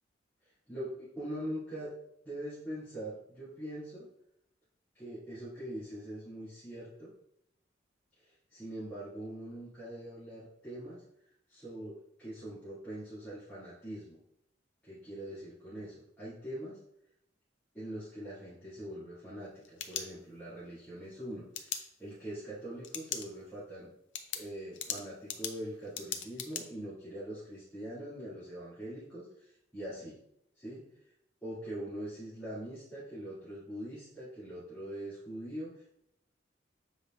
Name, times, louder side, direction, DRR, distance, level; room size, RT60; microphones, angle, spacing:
voice 1, 0.4-1.9 2.2-4.1 4.9-7.1 8.2-11.0 11.5-14.2 14.8-16.8 17.7-23.9 24.3-30.2 30.5-30.8 31.4-35.9, right 1 dB, 10° left, -14 dB, 2.5 m, -43 dB
sound 1, 19.4-20.6 21.5-21.8 22.8-23.3 23.6-23.7 24.1-26.6, left 8 dB, 75° left, 0.6 m, -39 dB
7.4 x 5.0 x 2.5 m, 0.76 s
head